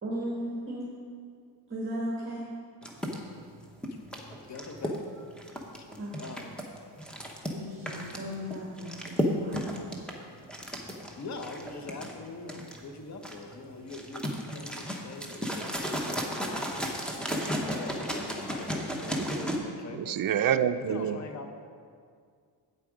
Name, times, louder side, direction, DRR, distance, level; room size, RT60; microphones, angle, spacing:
voice 1, 0.0-0.9 1.7-2.5 6.0-6.4 7.5-9.9, equal, 25° right, -5 dB, 1.7 m, -36 dB
sound 1, 2.8-19.6, equal, ahead, 1.0 m, -34 dB
voice 2, 4.5-5.0 5.8-5.9 6.2-6.5 11.2-16.7 17.4-20.2 20.8-21.5, left 3 dB, 40° left, 5 dB, 0.9 m, -43 dB
voice 3, 19.2-19.6 19.9-21.2, right 9 dB, 50° right, 11 dB, 0.5 m, -28 dB
8.5 x 8.3 x 5.0 m, 2.1 s
cardioid pair, 115°, 44 cm